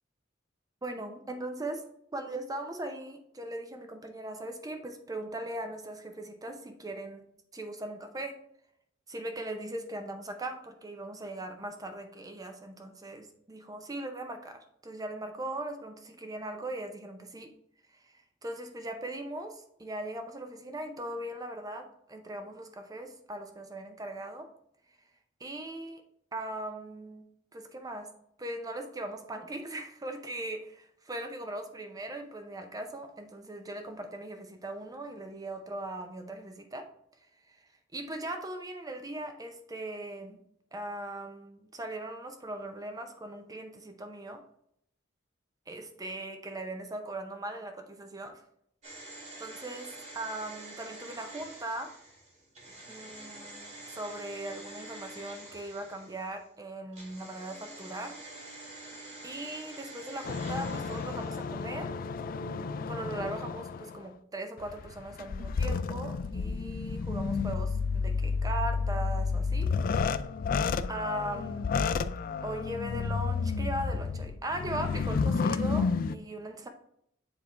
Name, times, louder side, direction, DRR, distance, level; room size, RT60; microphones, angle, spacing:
voice 1, 0.8-1.8 2.1-7.2 7.5-8.3 9.1-17.5 18.0-18.1 18.4-24.5 25.4-26.0 26.3-27.3 27.5-28.1 28.4-36.9 37.9-40.4 40.7-44.4 45.7-48.4 49.4-51.9 52.9-58.1 59.2-61.9 62.4-69.7 70.9-71.7 72.4-76.7, right 1 dB, 20° right, 5 dB, 0.7 m, -39 dB
sound 1, 48.8-56.4 56.9-61.6 61.9-62.0, right 2 dB, 40° right, 2.1 m, -47 dB
sound 2, 60.2-64.0 64.6-76.1, left 5 dB, 50° left, 0.3 m, -31 dB
7.3 x 3.4 x 4.5 m, 0.70 s
head